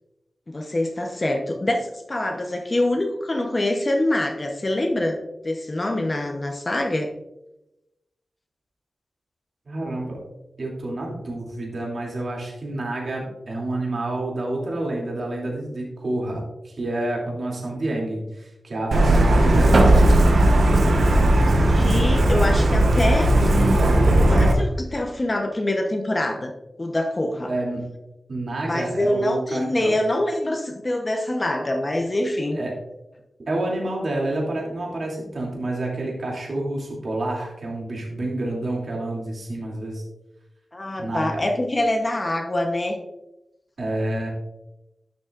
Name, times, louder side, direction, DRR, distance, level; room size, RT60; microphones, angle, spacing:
voice 1, 0.5-1.8 2.1-5.2 5.4-7.1 21.0-23.3 24.3-26.5 26.8-27.5 28.6-32.6 40.7-43.0, left 1 dB, 30° left, 3 dB, 0.9 m, -25 dB
voice 2, 9.6-10.2 10.6-19.8 27.5-27.8 28.3-29.9 32.5-32.7 33.4-40.0 41.0-41.4 43.8-44.3, right 2 dB, 60° right, -2 dB, 2.8 m, -28 dB
Truck, 18.9-24.5, right 1 dB, 80° right, 1.3 m, -16 dB
11.5 x 7.0 x 2.5 m, 0.92 s
wide cardioid pair, 100°, 0 cm